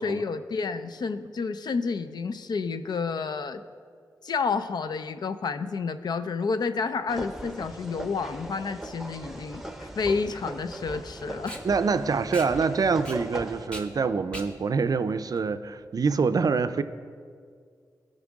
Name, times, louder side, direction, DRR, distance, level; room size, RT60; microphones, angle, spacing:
voice 1, 0.0-3.6 4.2-11.6, left 4 dB, 70° left, 11 dB, 0.4 m, -30 dB
sound 1, 7.1-13.7, right 1 dB, 5° right, 0.8 m, -39 dB
sound 2, 7.6-13.3, equal, 40° left, 2.3 m, -53 dB
Packing tape duct tape, 8.7-16.2, equal, 15° left, 1.3 m, -44 dB
voice 2, 11.6-16.8, right 5 dB, 55° right, 11 dB, 0.4 m, -25 dB
15.5 x 5.3 x 3.6 m, 2.1 s
cardioid pair, 55°, 7 cm